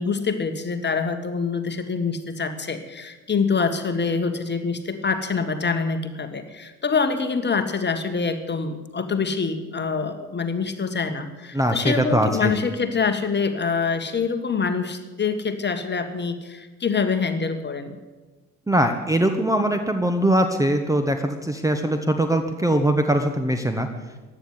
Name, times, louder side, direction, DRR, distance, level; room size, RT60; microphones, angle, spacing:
voice 1, 0.0-18.0, left 5 dB, 25° left, 8 dB, 1.7 m, -25 dB
voice 2, 11.5-12.5 18.7-23.9, right 1 dB, 5° right, 6 dB, 1.3 m, -21 dB
16.0 x 11.0 x 8.1 m, 1.2 s
figure-of-eight pair, 55°, 45 cm